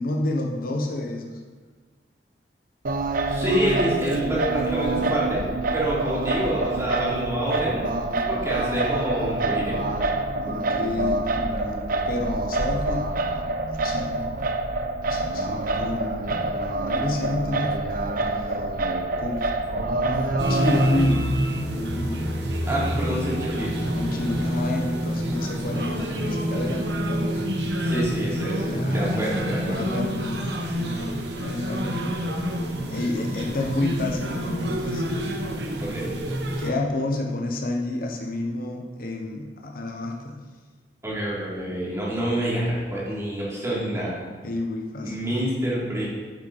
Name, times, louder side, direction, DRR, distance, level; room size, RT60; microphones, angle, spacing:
voice 1, 0.0-1.4 10.5-11.8 12.1-13.1 13.8-14.2 15.1-16.6 16.9-17.8 19.2-19.4 20.5-21.2 21.7-22.3 23.9-27.3 28.6-29.2 29.6-32.2 32.9-35.0 36.6-40.4 44.4-45.4, left 2 dB, 55° left, 1 dB, 0.9 m, -30 dB
Singing, 2.8-21.0, right 2 dB, 55° right, 0.7 m, -26 dB
voice 2, 3.3-5.4 5.7-7.8 8.3-9.8 22.7-23.7 27.8-29.8 35.8-36.1 41.0-44.1 45.1-46.1, right 1 dB, 15° right, -7 dB, 2.9 m, -27 dB
sound 1, 19.7-27.0, equal, 15° left, 0.7 m, -31 dB
sound 2, 20.4-36.7, equal, 70° right, 1.1 m, -28 dB
9.7 x 7.1 x 4.2 m, 1.5 s
head